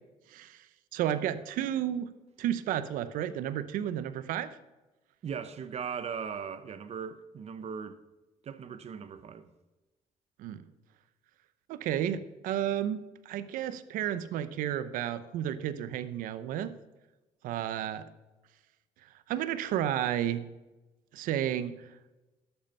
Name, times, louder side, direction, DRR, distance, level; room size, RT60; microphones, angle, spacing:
voice 1, 0.3-0.6 0.9-2.1 2.4-4.5 10.4-10.6 11.7-16.7 17.4-18.0 19.3-20.5 21.1-21.7, right 11 dB, 80° right, 0.8 m, -32 dB
voice 2, 5.2-8.0 8.4-9.5, right 7 dB, 50° right, 1.0 m, -38 dB
11.5 x 7.9 x 5.4 m
cardioid pair, 90°, 14 cm